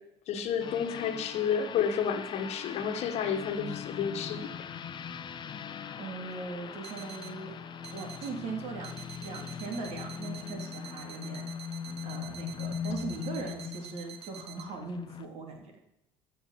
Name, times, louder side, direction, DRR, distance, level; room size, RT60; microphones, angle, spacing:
voice 1, 0.3-4.5, left 7 dB, 50° left, 5 dB, 1.7 m, -31 dB
sound 1, 0.6-15.2, left 7 dB, 35° left, 1.0 m, -40 dB
voice 2, 6.0-7.5 7.9-11.5 12.0-15.7, right 4 dB, 50° right, 1 dB, 3.0 m, -40 dB
sound 2, 6.3-6.4 6.8-7.4 7.8-8.3 8.8-14.6, right 10 dB, 75° right, 1.0 m, -48 dB
14.5 x 5.8 x 7.2 m, 0.84 s
figure-of-eight pair, 60°, 14 cm